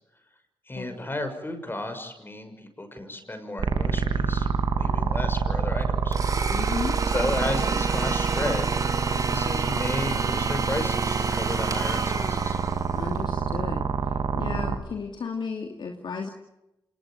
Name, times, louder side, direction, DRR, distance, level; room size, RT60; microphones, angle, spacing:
voice 1, 0.7-6.2 7.1-8.8 9.1-12.6, left 1 dB, 25° left, 7 dB, 6.5 m, -33 dB
sound 1, 3.6-14.8, right 5 dB, 65° right, 3.0 m, -26 dB
Domestic sounds home sounds, 6.1-13.2, right 4 dB, 40° right, 3.3 m, -31 dB
voice 2, 6.5-7.0 12.9-16.3, left 5 dB, 60° left, 2 dB, 2.9 m, -34 dB
26.5 x 20.0 x 9.2 m, 0.92 s
cardioid pair, 60°, 9 cm